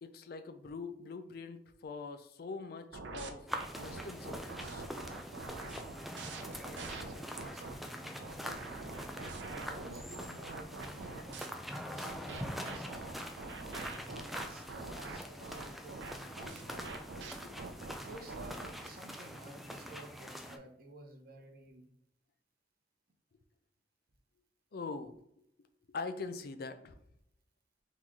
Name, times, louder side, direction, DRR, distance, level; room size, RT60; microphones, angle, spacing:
voice 1, 0.0-3.5 3.8-4.9 5.6-5.7 16.4-16.5 17.2-17.6 24.7-25.1 25.9-26.9, left 4 dB, 60° left, 9 dB, 0.4 m, -43 dB
sound 1, 2.9-7.7 8.2-11.5 12.0-18.7, right 3 dB, 90° right, 0.5 m, -45 dB
sound 2, 3.5-20.6, equal, ahead, 0.4 m, -44 dB
voice 2, 6.5-8.6 9.4-11.5 11.9-13.0 13.9-16.7 17.9-21.9, right 1 dB, 55° right, 3 dB, 0.8 m, -53 dB
4.0 x 3.0 x 3.6 m, 0.73 s
head